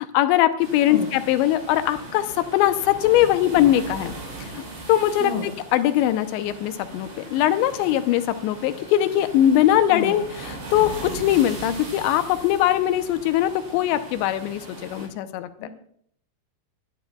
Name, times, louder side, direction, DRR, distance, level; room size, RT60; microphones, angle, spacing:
voice 1, 0.0-4.1 4.4-15.7, left 12 dB, 85° left, 11 dB, 2.9 m, -21 dB
sound 1, 0.6-15.1, right 2 dB, 90° right, 8.0 m, -39 dB
voice 2, 0.9-1.1 5.2-5.4 9.9-10.2 15.6-15.7, left 4 dB, 65° left, 1 dB, 2.3 m, -29 dB
24.0 x 11.5 x 2.3 m, 0.64 s
omnidirectional pair, 5.1 m